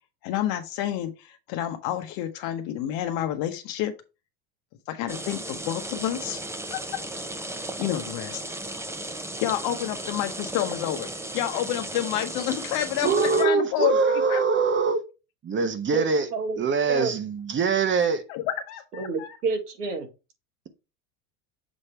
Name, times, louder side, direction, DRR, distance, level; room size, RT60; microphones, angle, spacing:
voice 1, 0.2-3.9 4.9-6.4 6.7-7.0 7.8-8.4 9.4-11.1 11.3-13.9 14.3-14.4 18.3-19.3, left 12 dB, 55° left, 1.1 m, -29 dB
sound 1, 5.1-13.4, right 1 dB, 5° right, 0.8 m, -35 dB
voice 2, 13.0-15.0 15.4-16.3 16.6-18.2, right 5 dB, 25° right, 1.0 m, -23 dB
voice 3, 18.9-20.1, right 4 dB, 90° right, 1.9 m, -28 dB
7.3 x 3.3 x 4.3 m
hypercardioid pair, 105°, 45 cm